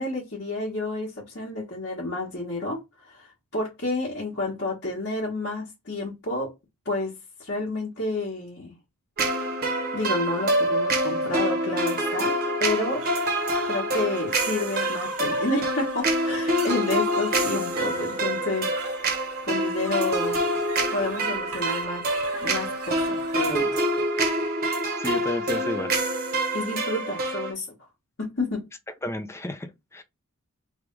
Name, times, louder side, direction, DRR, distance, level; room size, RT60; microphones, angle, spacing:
voice 1, 0.0-6.5 6.8-7.1 7.4-8.7 9.9-12.3 12.6-13.0 13.7-19.2 19.5-20.4 20.9-22.0 22.4-23.8 26.5-27.7 28.2-28.6, left 2 dB, 50° left, 1.4 m, -30 dB
sound 1, 9.2-27.5, right 1 dB, 45° right, 1.1 m, -26 dB
sound 2, 12.9-23.6, right 4 dB, 85° right, 1.2 m, -42 dB
voice 2, 25.0-25.9 29.0-30.0, equal, 10° left, 0.5 m, -32 dB
3.5 x 2.4 x 4.5 m
head